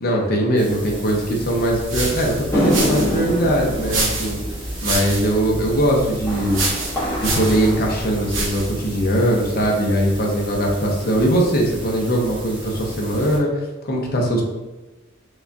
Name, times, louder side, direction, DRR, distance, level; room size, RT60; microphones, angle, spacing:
voice 1, 0.0-4.4 4.8-6.7 7.2-14.4, right 1 dB, 50° left, -1 dB, 0.6 m, -20 dB
sound 1, 0.5-13.4, equal, 25° right, 0.8 m, -36 dB
sound 2, 1.5-8.8, right 2 dB, 65° right, 0.8 m, -27 dB
sound 3, 2.5-9.0, equal, 10° left, 0.9 m, -26 dB
4.8 x 2.2 x 2.6 m, 1.1 s
head